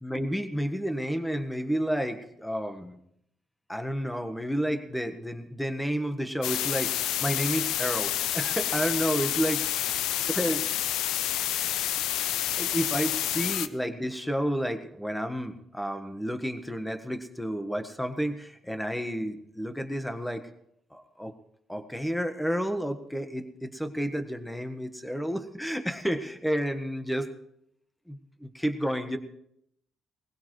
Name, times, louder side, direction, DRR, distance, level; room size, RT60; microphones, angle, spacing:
voice 1, 0.0-3.0 3.7-9.6 10.4-10.6 12.6-20.4 20.9-21.3 21.7-27.3 28.1-29.2, equal, 5° left, 8 dB, 1.4 m, -31 dB
sound 1, 6.4-13.7, left 12 dB, 90° left, 0.5 m, -29 dB
20.0 x 16.0 x 3.2 m, 0.74 s
cardioid pair, 90°, 0 cm